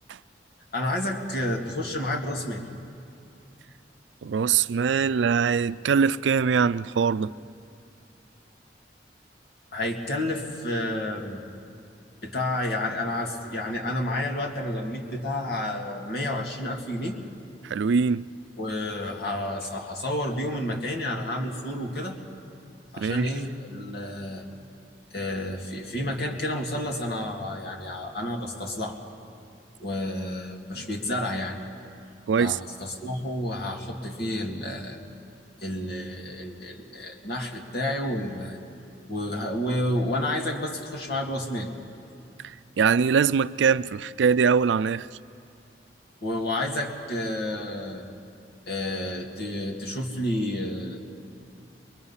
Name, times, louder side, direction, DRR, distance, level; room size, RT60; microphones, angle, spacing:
voice 1, 0.7-2.6 9.7-11.4 12.2-17.2 18.6-22.2 22.9-24.4 25.1-29.0 29.8-31.6 32.4-35.0 35.6-38.6 39.1-41.7 46.2-48.1 48.7-51.0, left 1 dB, 60° left, 2.3 m, -30 dB
voice 2, 4.2-7.3 17.6-18.2 23.0-23.3 30.7-30.8 32.3-32.6 42.8-45.1, right 6 dB, 90° right, 0.4 m, -22 dB
23.5 x 22.5 x 5.6 m
head